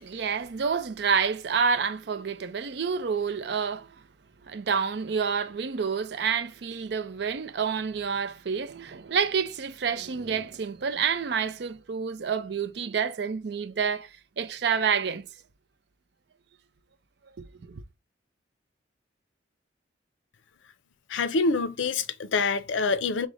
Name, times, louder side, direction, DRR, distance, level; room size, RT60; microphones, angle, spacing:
voice 1, 0.0-3.9 4.5-14.1 14.4-15.3 17.6-17.8, right 6 dB, 60° right, 0.4 m, -28 dB
voice 2, 21.1-23.3, left 4 dB, 85° left, 0.5 m, -26 dB
4.8 x 2.1 x 3.8 m
head